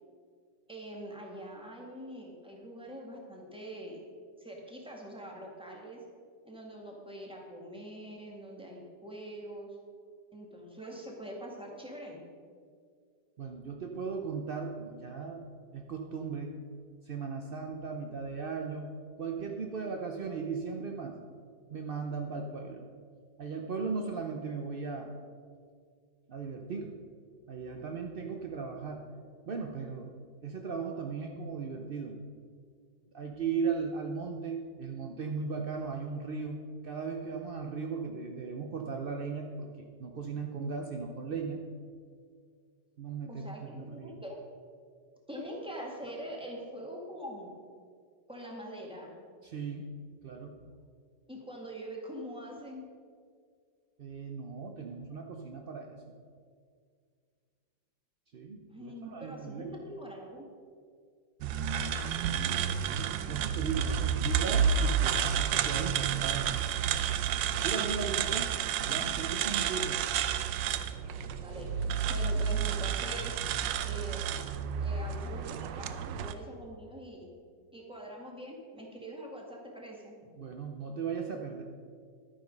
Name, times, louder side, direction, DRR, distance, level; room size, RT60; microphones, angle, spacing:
voice 1, 0.7-4.0 4.4-6.0 6.4-9.8 10.3-12.2 43.3-44.4 45.3-47.6 48.3-49.2 51.3-52.8 58.7-60.5 68.9-69.3 71.0-73.4 73.8-74.4 74.8-77.3 77.7-80.2, equal, 5° right, -2 dB, 1.9 m, -44 dB
voice 2, 13.4-15.5 15.7-16.5 17.0-21.2 21.7-22.9 23.4-25.1 26.3-26.9 27.5-29.0 29.5-30.1 30.4-32.2 33.1-41.6 43.0-44.2 49.4-49.9 50.2-50.6 54.0-56.0 58.3-59.7 62.8-66.6 67.6-68.5 68.8-70.0 80.4-81.6, right 5 dB, 60° right, 2 dB, 0.6 m, -37 dB
sound 1, 61.4-76.3, right 8 dB, 90° right, 1.3 m, -30 dB
12.0 x 9.2 x 5.4 m, 2.1 s
omnidirectional pair, 2.0 m